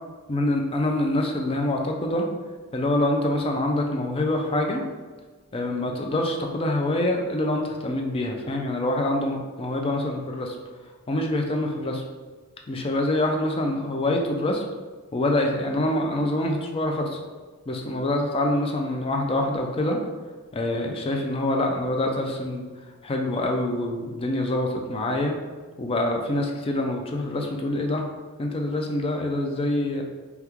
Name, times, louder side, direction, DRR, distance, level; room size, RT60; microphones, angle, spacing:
voice 1, 0.3-2.3 2.7-4.8 5.5-10.6 11.1-12.0 12.7-14.6 15.1-17.2 17.7-20.0 20.5-22.7 23.0-25.4 25.8-28.1 28.4-30.0, left 1 dB, 25° left, 2 dB, 0.3 m, -25 dB
3.5 x 2.3 x 2.9 m, 1.4 s
head